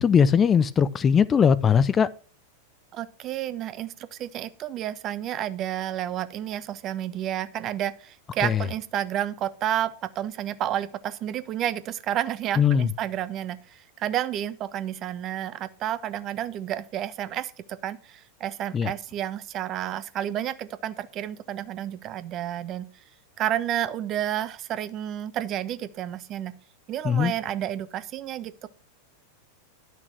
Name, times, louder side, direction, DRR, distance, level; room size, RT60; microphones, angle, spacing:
voice 1, 0.0-2.1 8.4-8.6 12.6-12.9 18.7-18.9 27.0-27.3, left 7 dB, 20° left, 0.4 m, -20 dB
voice 2, 2.9-22.9 23.4-26.5 26.9-28.7, right 11 dB, 35° right, 0.7 m, -31 dB
10.5 x 6.0 x 5.9 m
figure-of-eight pair, 90°, 0 cm